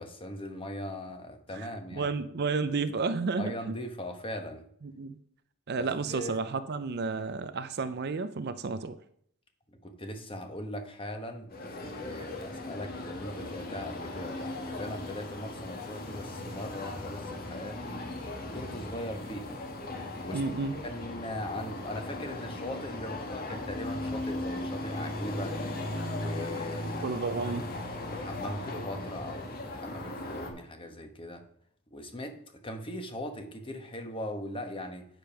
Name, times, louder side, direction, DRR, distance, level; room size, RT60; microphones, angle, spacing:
voice 1, 0.0-2.2 3.4-4.6 5.8-6.4 9.7-18.0 18.4-19.6 20.2-20.5 20.8-25.6 26.1-27.0 27.3-27.7 28.1-31.4 31.9-35.1, left 1 dB, 25° left, 5 dB, 1.1 m, -40 dB
voice 2, 1.5-3.8 4.8-5.2 5.7-9.0 20.3-20.7 27.0-27.6, right 4 dB, 50° right, 12 dB, 0.5 m, -32 dB
sound 1, 11.5-30.5, left 2 dB, 40° left, 1.4 m, -37 dB
9.4 x 5.2 x 5.8 m, 0.67 s
head